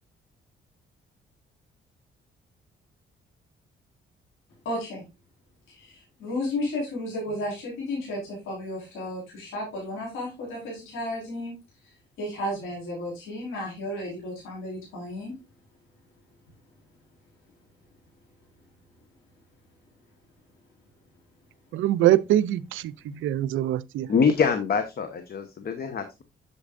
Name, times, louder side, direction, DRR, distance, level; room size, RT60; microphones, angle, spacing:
voice 1, 4.6-5.0 5.7-11.5 11.8-15.3 23.0-23.2, left 1 dB, 90° left, 4.6 m, -33 dB
voice 2, 21.7-24.1, right 13 dB, 80° right, 0.5 m, -23 dB
voice 3, 24.1-26.2, left 5 dB, 50° left, 1.1 m, -24 dB
8.5 x 7.0 x 2.5 m
cardioid pair, 90°, 20 cm